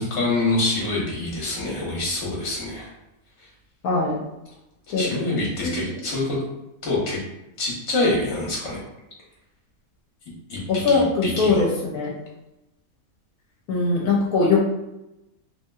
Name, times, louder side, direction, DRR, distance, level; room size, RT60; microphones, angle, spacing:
voice 1, 0.0-2.9 3.4-3.5 5.0-6.4 6.8-7.2 7.6-8.8 10.5-11.7, left 2 dB, 50° left, -4 dB, 1.2 m, -26 dB
voice 2, 3.8-4.2 4.9-5.0 5.6-5.8 10.7-11.7 11.9-12.1 13.7-14.6, left 4 dB, 80° left, -3 dB, 1.1 m, -20 dB
3.0 x 2.8 x 2.3 m, 0.93 s
omnidirectional pair, 1.6 m